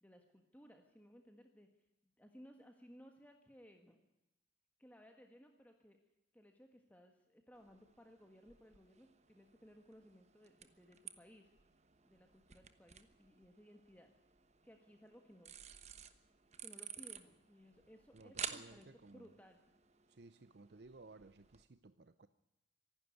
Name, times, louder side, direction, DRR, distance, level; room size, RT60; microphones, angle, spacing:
voice 1, 0.0-1.7 2.2-4.0 4.8-6.0 6.3-11.5 12.0-14.1 14.6-15.6 16.6-19.7, equal, 10° left, 4 dB, 1.4 m, -61 dB
sound 1, 7.5-21.6, right 8 dB, 35° right, 1.2 m, -53 dB
voice 2, 18.1-19.4 20.1-22.3, right 3 dB, 55° right, 12 dB, 0.7 m, -58 dB
25.5 x 11.5 x 9.3 m, 0.93 s
head